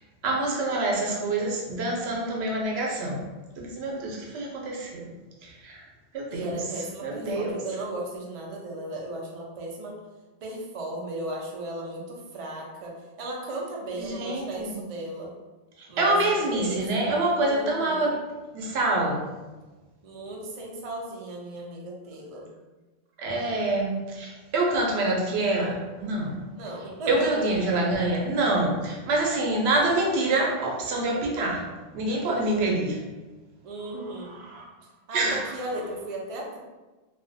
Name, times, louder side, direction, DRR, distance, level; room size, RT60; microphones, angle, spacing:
voice 1, 0.2-3.2 3.6-5.1 5.6-5.8 6.1-6.6 7.0-7.5 14.0-14.7 16.0-18.2 18.5-19.2 23.2-26.4 27.1-31.6 31.9-33.0 34.5-34.6 35.1-35.4, right 2 dB, 80° right, -1 dB, 0.8 m, -26 dB
voice 2, 6.3-10.0 10.4-15.3 15.9-17.1 17.3-18.1 20.0-22.5 26.5-27.3 27.6-27.7 33.6-34.4 35.1-36.6, right 2 dB, 55° right, -1 dB, 0.4 m, -36 dB
2.3 x 2.1 x 2.5 m, 1.2 s
omnidirectional pair, 1.1 m